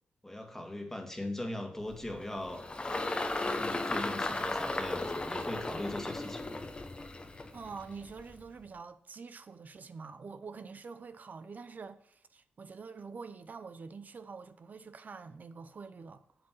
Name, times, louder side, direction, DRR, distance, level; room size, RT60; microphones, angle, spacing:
voice 1, 0.2-6.6, left 1 dB, 10° left, 2.0 m, -40 dB
Engine, 1.9-8.5, left 2 dB, 25° left, 1.1 m, -36 dB
voice 2, 7.5-16.2, right 5 dB, 50° right, 0.8 m, -46 dB
7.8 x 7.8 x 4.5 m
cardioid pair, 75°, 4 cm